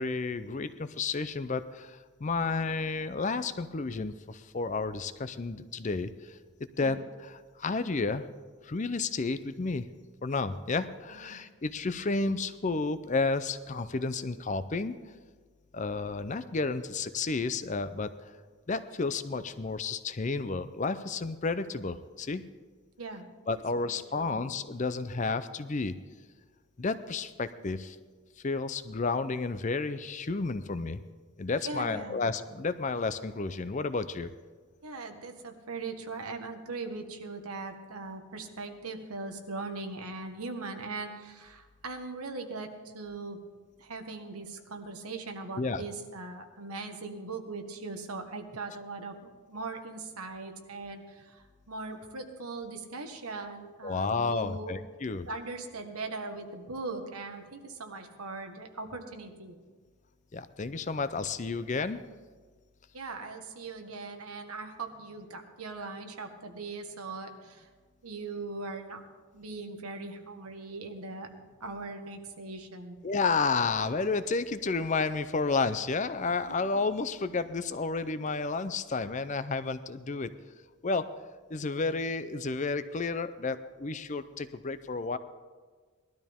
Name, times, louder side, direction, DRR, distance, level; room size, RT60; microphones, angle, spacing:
voice 1, 0.0-6.4 6.8-8.3 8.6-9.9 10.2-15.0 15.7-18.1 18.7-22.4 23.5-26.0 26.8-28.0 28.4-31.0 31.4-34.3 45.6-45.8 53.8-55.3 60.3-62.0 73.0-80.3 80.8-81.1 81.5-85.2, left 4 dB, 35° left, 12 dB, 0.5 m, -31 dB
voice 2, 11.1-11.4 23.0-23.3 23.8-24.5 31.6-32.2 34.8-43.4 43.8-49.1 49.5-54.7 55.3-59.5 62.9-67.7 68.0-69.0 69.3-71.3 71.6-73.0 76.5-76.6, right 3 dB, 90° right, 5 dB, 1.4 m, -40 dB
19.5 x 12.5 x 3.6 m, 1.5 s
head